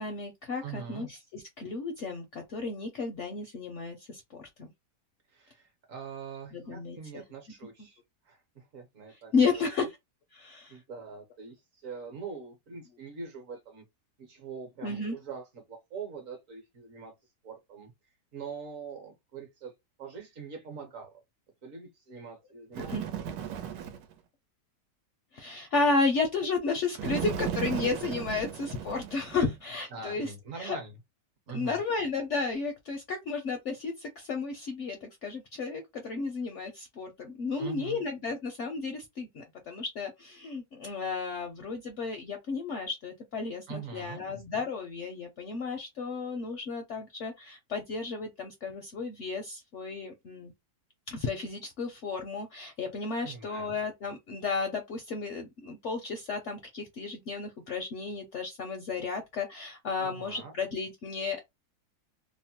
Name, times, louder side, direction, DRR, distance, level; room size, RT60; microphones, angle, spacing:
voice 1, 0.0-4.7 6.5-7.2 9.1-10.0 10.3-10.8 14.8-15.2 22.8-23.0 25.3-30.3 30.6-30.8 31.5-50.5 51.1-61.4, left 4 dB, 70° left, 0.7 m, -33 dB
voice 2, 0.6-1.1 5.3-8.0 8.3-9.9 10.7-11.6 11.8-13.8 14.2-17.1 17.4-17.9 18.3-19.7 20.0-21.2 21.6-23.0 29.9-30.9 31.5-31.8 37.6-38.0 43.7-44.2 53.2-53.7 60.0-60.5, right 5 dB, 60° right, 1.1 m, -43 dB
Bird, 22.7-24.1 27.0-29.5, right 9 dB, 90° right, 1.2 m, -35 dB
2.9 x 2.1 x 2.8 m
omnidirectional pair, 1.8 m